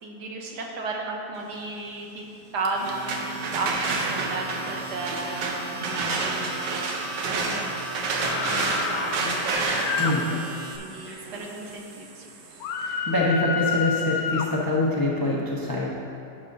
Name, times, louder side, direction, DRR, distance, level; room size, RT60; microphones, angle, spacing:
voice 1, 0.0-2.2 2.5-6.8 7.4-9.4 10.0-10.4 10.8-12.3, right 3 dB, 75° right, 0 dB, 1.4 m, -34 dB
Domestic sounds home sounds, 2.6-10.8, right 3 dB, 55° right, 0.6 m, -38 dB
sound 1, 2.8-12.6, right 3 dB, 90° right, 1.4 m, -30 dB
sound 2, 8.2-10.1 12.6-14.5, left 6 dB, 70° left, 1.0 m, -29 dB
voice 2, 12.8-15.9, left 2 dB, 30° left, -5 dB, 0.4 m, -25 dB
11.0 x 6.3 x 2.6 m, 2.9 s
omnidirectional pair, 1.8 m